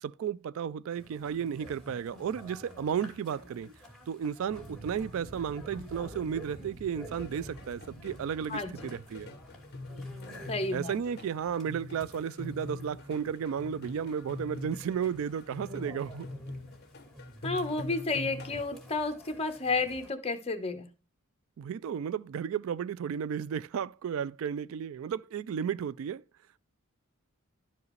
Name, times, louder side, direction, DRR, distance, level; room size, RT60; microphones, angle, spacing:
voice 1, 0.0-3.7 4.1-9.3 10.7-16.3 21.6-26.2, right 8 dB, 65° right, 0.3 m, -33 dB
sound 1, 0.9-20.1, equal, ahead, 2.6 m, -50 dB
sound 2, 4.5-10.3, right 1 dB, 80° right, 2.1 m, -50 dB
sound 3, 7.1-18.7, left 2 dB, 50° left, 0.8 m, -45 dB
voice 2, 10.5-10.9 17.4-20.9, left 3 dB, 30° left, 1.1 m, -31 dB
12.0 x 4.8 x 3.2 m
head